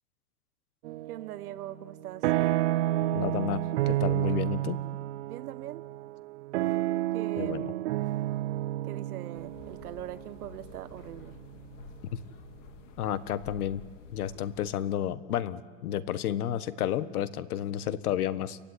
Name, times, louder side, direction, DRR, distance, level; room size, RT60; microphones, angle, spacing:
sound 1, 0.8-1.4 1.8-11.8, right 15 dB, 50° right, 0.6 m, -30 dB
voice 1, 1.1-2.3 5.3-5.9 7.1-7.9 8.8-11.4, right 12 dB, 80° right, 13 dB, 1.4 m, -41 dB
voice 2, 3.1-4.8 7.4-7.7 12.1-12.2 13.0-13.8 14.1-18.6, left 10 dB, 90° left, 16 dB, 1.4 m, -31 dB
sound 2, 9.3-14.8, left 5 dB, 55° left, 2.1 m, -50 dB
29.5 x 15.5 x 9.9 m, 1.5 s
supercardioid pair, 175°, 43 cm